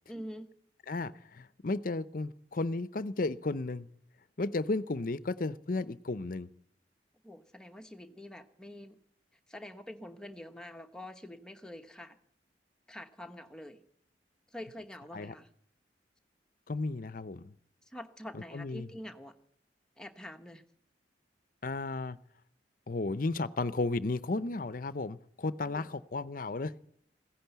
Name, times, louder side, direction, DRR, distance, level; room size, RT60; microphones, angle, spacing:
voice 1, 0.1-0.5 7.2-9.0 9.5-12.2 12.9-13.8 14.5-15.5 17.8-19.3 20.0-20.6 25.6-25.9, left 1 dB, 5° left, 5 dB, 1.1 m, -46 dB
voice 2, 0.9-3.9 4.4-6.5 15.1-15.3 16.7-17.5 18.5-18.9 21.6-22.2 22.9-26.7, left 3 dB, 50° left, 15 dB, 0.6 m, -34 dB
15.5 x 10.5 x 8.1 m, 0.68 s
head